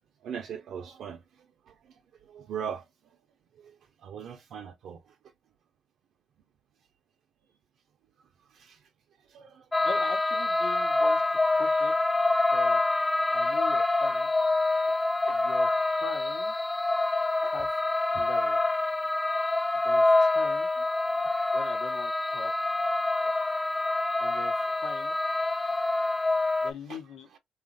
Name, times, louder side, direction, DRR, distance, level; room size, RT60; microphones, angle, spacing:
voice 1, 0.2-2.9 3.6-5.2 8.5-8.8 9.3-9.7 15.3-15.4 17.4-17.5 18.1-18.3 19.9-20.3 20.8-20.9 23.2-23.3 24.3-24.4 26.7-27.4, right 8 dB, 75° right, 0.4 m, -42 dB
sound 1, 9.7-26.7, left 2 dB, 20° left, 0.3 m, -26 dB
voice 2, 9.8-11.9 12.5-12.8 13.3-14.3 15.3-15.7 16.0-16.5 17.4-17.7 18.1-18.6 19.8-20.7 21.5-22.5 24.2-25.1 26.6-27.3, left 5 dB, 80° left, 0.9 m, -41 dB
3.0 x 2.4 x 2.5 m
cardioid pair, 90°, 0 cm